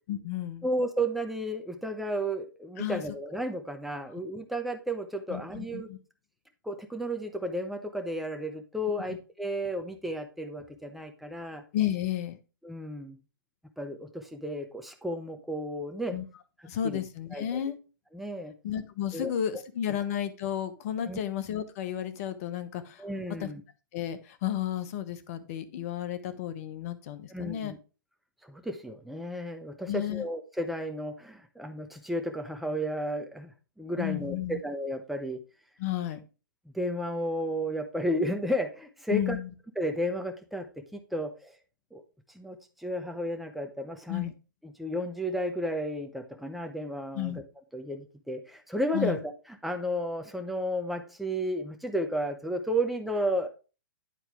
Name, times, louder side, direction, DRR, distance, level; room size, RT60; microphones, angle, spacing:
voice 1, 0.1-0.7 2.8-3.0 5.3-6.0 11.7-12.4 16.1-16.2 16.6-17.8 18.6-23.0 23.4-23.5 23.9-27.7 29.9-30.2 34.0-34.6 35.8-36.2 39.1-39.5 44.1-44.3 47.1-47.4 48.9-49.2, left 11 dB, 45° left, 11 dB, 1.2 m, -32 dB
voice 2, 0.6-5.9 6.6-11.6 12.6-13.2 13.8-16.2 16.8-17.0 17.3-17.6 18.1-18.5 19.1-19.3 21.1-21.2 23.0-23.6 27.3-27.8 28.4-35.4 36.7-39.4 39.8-41.5 41.9-42.0 42.3-44.3 44.6-47.4 47.7-49.3 49.6-53.5, equal, ahead, 4 dB, 1.1 m, -33 dB
10.5 x 4.4 x 3.4 m, 0.33 s
hypercardioid pair, 125°, 11 cm